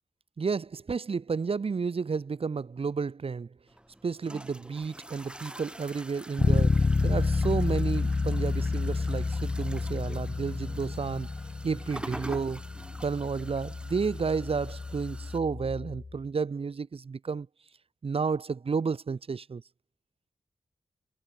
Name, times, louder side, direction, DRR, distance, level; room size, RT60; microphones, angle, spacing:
voice 1, 0.4-3.5 4.0-11.3 11.6-12.6 13.0-17.5 18.0-19.6, right 5 dB, 55° right, 1.8 m, -31 dB
sound 1, 3.7-15.4, right 1 dB, 10° right, 2.8 m, -46 dB
Bass guitar, 6.4-16.2, left 3 dB, 40° left, 2.9 m, -30 dB
wide cardioid pair, 85°, 11 cm